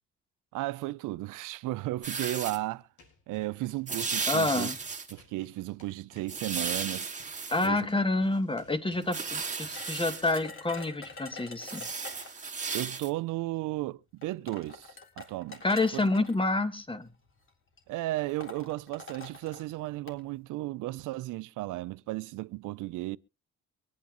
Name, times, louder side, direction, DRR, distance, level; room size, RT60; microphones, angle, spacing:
voice 1, 0.5-2.9 3.3-4.7 5.1-7.1 7.6-7.9 12.7-15.6 15.9-16.2 17.9-23.2, right 18 dB, 90° right, 0.5 m, -34 dB
sound 1, 2.0-2.6 3.9-5.1 6.3-7.7 9.0-10.4 11.6-13.1, right 5 dB, 25° right, 2.0 m, -35 dB
sound 2, 2.3-2.4 2.7-12.8, left 4 dB, 75° left, 5.4 m, -59 dB
voice 2, 4.3-4.8 7.5-11.8 15.6-17.1, left 2 dB, 15° left, 1.6 m, -28 dB
sound 3, 9.7-12.5 13.6-13.7 14.2-16.4 17.3-17.5 17.8-17.9 18.2-20.2, left 3 dB, 40° left, 3.8 m, -46 dB
23.5 x 9.4 x 3.0 m
cardioid pair, 90°, 30 cm